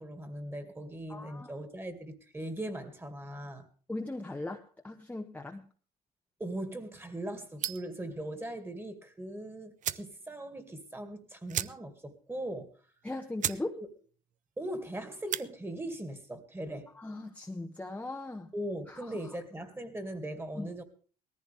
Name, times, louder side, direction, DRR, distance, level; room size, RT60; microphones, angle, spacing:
voice 1, 0.0-3.7 6.4-12.7 13.5-13.9 14.6-16.9 18.5-20.8, right 1 dB, 15° right, 2.2 m, -40 dB
voice 2, 1.1-1.5 3.9-5.7 13.0-13.8 17.0-18.5 18.9-19.2 20.5-20.7, left 2 dB, 10° left, 1.0 m, -39 dB
sound 1, 7.6-8.0 9.3-9.4 9.8-10.1 10.5-10.6 10.8-11.0 11.5-12.1 12.4-12.5 13.0-13.1 13.4-13.7 14.0-14.4 15.1-15.5, right 10 dB, 50° right, 0.6 m, -35 dB
18.0 x 14.5 x 3.5 m
cardioid pair, 110°, 17 cm